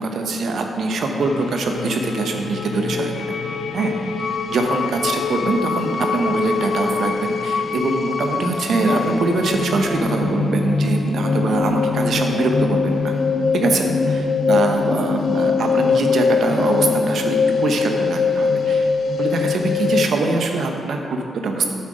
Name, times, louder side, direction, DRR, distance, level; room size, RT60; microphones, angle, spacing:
voice 1, 0.0-3.2 3.7-3.9 4.2-13.1 13.5-13.9 14.5-18.9 19.2-21.7, right 3 dB, 70° right, 3 dB, 1.0 m, -23 dB
sound 1, 1.2-20.0, left 5 dB, 65° left, 0.6 m, -22 dB
8.7 x 7.2 x 5.1 m, 2.5 s
supercardioid pair, 45°, 0 cm